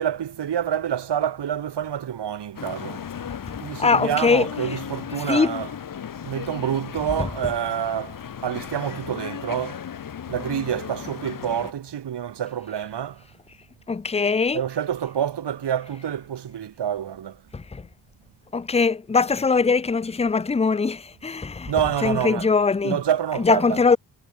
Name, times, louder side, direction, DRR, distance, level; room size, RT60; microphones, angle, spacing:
voice 1, 0.0-3.0 3.6-5.8 6.2-9.8 10.3-13.2 14.5-17.4 21.7-22.5 22.8-23.9, right 9 dB, 70° right, 1.4 m, -27 dB
sound 1, 2.6-11.7, left 8 dB, 50° left, 1.0 m, -35 dB
voice 2, 3.8-4.5 5.3-5.5 13.9-14.6 17.5-17.8 18.5-21.7 22.0-23.0 23.4-24.0, left 4 dB, 15° left, 0.5 m, -21 dB
wide cardioid pair, 135°, 43 cm